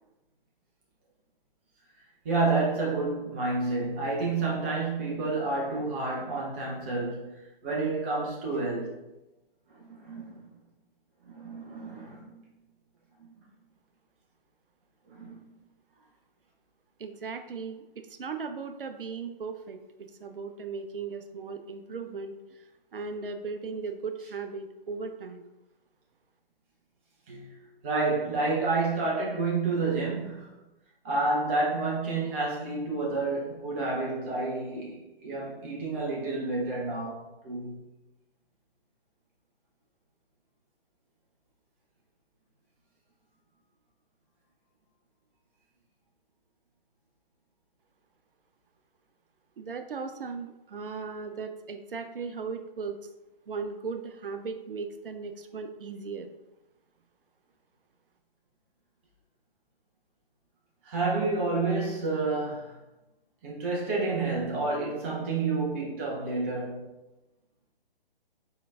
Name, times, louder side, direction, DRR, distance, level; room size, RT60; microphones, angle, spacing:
voice 1, 2.2-9.0 9.7-10.4 11.2-12.4 15.1-15.4 27.3-30.5 31.0-37.8 60.8-62.8 63.4-66.9, right 3 dB, 15° right, 0.4 m, -29 dB
voice 2, 17.0-19.8 20.2-25.4 49.6-53.1 53.5-56.3, right 5 dB, 65° right, 0.5 m, -37 dB
4.2 x 3.7 x 2.3 m
figure-of-eight pair, 130°, 29 cm